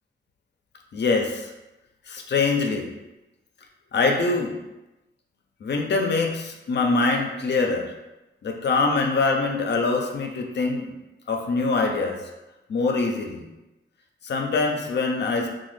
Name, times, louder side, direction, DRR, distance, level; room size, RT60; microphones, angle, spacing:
voice 1, 0.9-1.5 2.1-2.9 3.9-4.6 5.6-7.9 8.4-10.9 11.3-12.2 12.7-13.5 14.2-15.5, left 3 dB, 55° left, 2 dB, 0.5 m, -24 dB
3.0 x 2.2 x 3.2 m, 1.0 s
cardioid pair, 85°, 21 cm